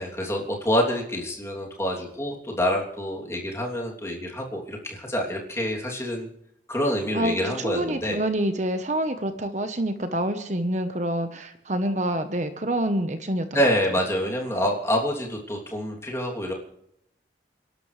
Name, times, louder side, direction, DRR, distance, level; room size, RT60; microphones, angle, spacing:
voice 1, 0.0-6.3 6.7-8.2 13.5-16.5, equal, 15° left, -1 dB, 3.1 m, -27 dB
voice 2, 7.1-13.5, right 1 dB, 40° right, 8 dB, 1.1 m, -27 dB
29.0 x 12.0 x 3.3 m, 0.76 s
head